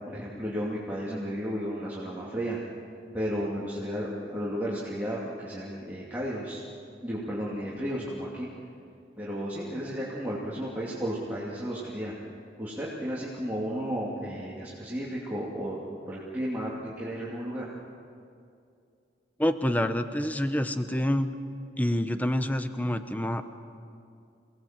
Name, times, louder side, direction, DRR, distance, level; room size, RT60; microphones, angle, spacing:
voice 1, 0.1-2.6 3.1-6.6 7.0-8.5 9.2-12.1 12.6-15.8 16.1-17.7, equal, 10° right, -7 dB, 2.7 m, -33 dB
voice 2, 19.4-21.3 21.8-23.4, left 1 dB, 10° left, 9 dB, 0.9 m, -27 dB
28.0 x 19.0 x 7.6 m, 2.4 s
head